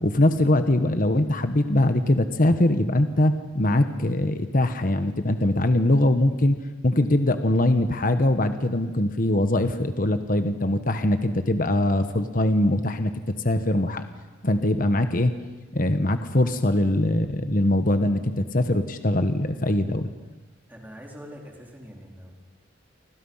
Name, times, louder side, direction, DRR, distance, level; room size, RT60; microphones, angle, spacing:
voice 1, 0.0-6.6 6.8-13.1 13.4-14.0 14.4-15.3 15.7-20.1, left 1 dB, 45° left, 8 dB, 1.3 m, -22 dB
voice 2, 20.7-22.3, equal, 10° right, -1 dB, 4.4 m, -43 dB
29.5 x 25.0 x 5.8 m, 1.2 s
head